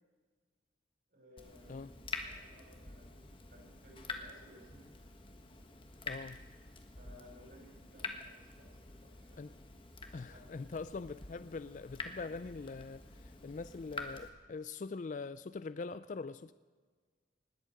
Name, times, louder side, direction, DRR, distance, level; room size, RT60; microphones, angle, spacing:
voice 1, 1.1-2.0 2.2-4.9 5.4-5.7 7.0-9.4 10.0-10.4, equal, 55° right, 0 dB, 5.8 m, -60 dB
Water tap faucet / Drip, 1.4-14.3, left 4 dB, 30° left, 1.4 m, -47 dB
voice 2, 6.0-6.4 9.4-9.6 10.1-16.5, left 4 dB, 45° left, 14 dB, 0.4 m, -43 dB
19.5 x 8.4 x 7.9 m, 1.5 s
head